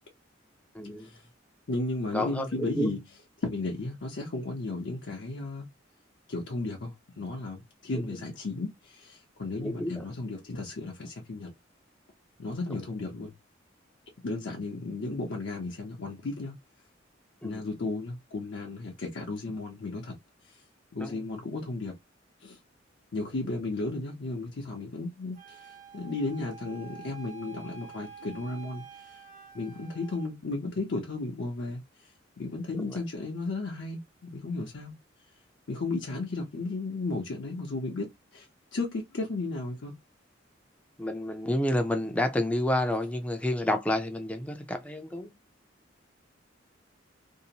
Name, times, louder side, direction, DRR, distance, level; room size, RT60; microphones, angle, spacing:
voice 1, 0.7-1.1 2.1-3.0 9.6-10.1 17.4-17.6 21.0-21.2 32.9-33.0 41.0-45.3, left 1 dB, 5° left, 0.4 m, -29 dB
voice 2, 1.7-3.0 3.4-5.7 6.3-11.5 12.4-13.3 14.2-16.6 17.4-20.1 20.5-20.6 20.9-22.0 22.4-22.6 23.1-29.2 29.5-32.1 32.4-34.9 35.7-38.1 38.3-38.5 38.7-39.9, left 2 dB, 65° left, 0.6 m, -34 dB
Wind instrument woodwind instrument, 25.4-30.3, right 6 dB, 40° right, 0.7 m, -48 dB
2.7 x 2.0 x 2.7 m
head